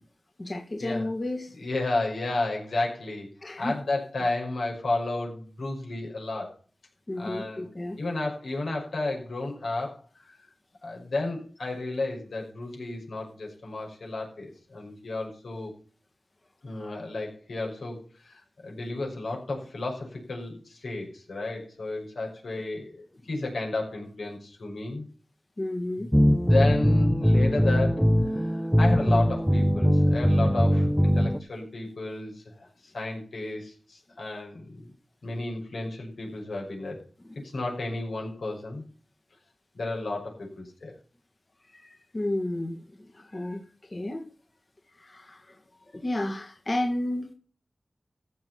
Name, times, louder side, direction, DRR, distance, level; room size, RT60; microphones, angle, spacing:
voice 1, 0.4-1.5 3.4-3.8 7.1-8.0 25.6-26.1 37.3-37.4 41.7-44.3 44.9-45.6 45.9-47.3, left 1 dB, 40° left, 3 dB, 1.8 m, -32 dB
voice 2, 1.5-3.3 3.6-6.5 7.2-7.7 8.0-10.4 10.8-15.7 16.6-25.0 26.0-26.1 26.5-34.9 35.2-37.0 37.4-38.8 39.7-41.0, left 2 dB, 85° left, -1 dB, 5.8 m, -32 dB
sound 1, 26.1-31.4, equal, ahead, 0.8 m, -21 dB
15.0 x 6.4 x 5.8 m, 0.40 s
wide cardioid pair, 60°, 0 cm